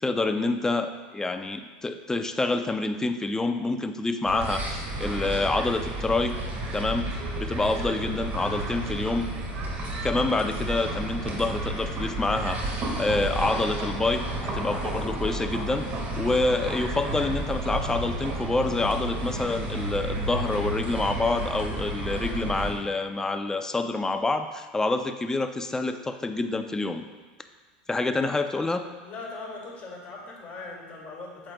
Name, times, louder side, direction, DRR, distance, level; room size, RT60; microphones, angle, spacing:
voice 1, 0.0-6.4 6.7-7.1 7.4-9.3 10.0-15.9 16.2-27.0 27.9-28.9, left 2 dB, 10° left, 8 dB, 0.5 m, -27 dB
sound 1, 4.2-22.7, right 1 dB, 40° right, 1.8 m, -32 dB
voice 2, 29.0-31.5, left 3 dB, 35° left, -3 dB, 2.3 m, -40 dB
8.4 x 7.6 x 2.3 m, 1.3 s
hypercardioid pair, 100°, 5 cm